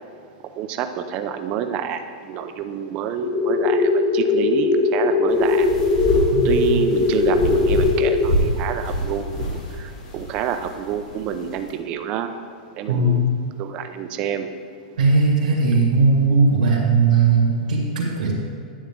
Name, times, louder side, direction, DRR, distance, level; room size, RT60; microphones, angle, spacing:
voice 1, 0.6-5.7 6.4-12.3 12.7-13.3 13.6-14.5, right 8 dB, 25° right, 8 dB, 0.5 m, -28 dB
sound 1, 3.2-8.2, left 3 dB, 20° left, 0.8 m, -19 dB
sound 2, 5.3-11.7, equal, 45° left, 2.0 m, -27 dB
voice 2, 6.3-6.7 12.9-13.2 15.0-18.3, right 3 dB, 90° right, -3 dB, 2.3 m, -18 dB
10.0 x 8.0 x 3.7 m, 2.4 s
supercardioid pair, 170°, 4 cm